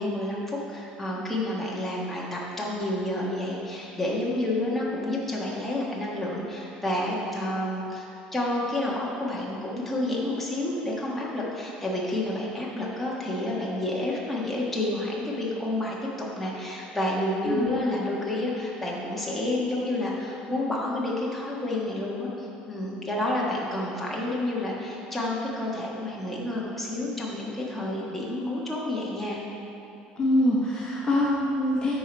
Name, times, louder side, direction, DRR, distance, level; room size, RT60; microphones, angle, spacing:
voice 1, 0.0-29.4, left 1 dB, 5° left, -5 dB, 1.3 m, -29 dB
voice 2, 30.2-31.9, left 1 dB, 25° left, -5 dB, 1.1 m, -24 dB
10.0 x 4.7 x 4.4 m, 2.9 s
cardioid pair, 135°, 3 cm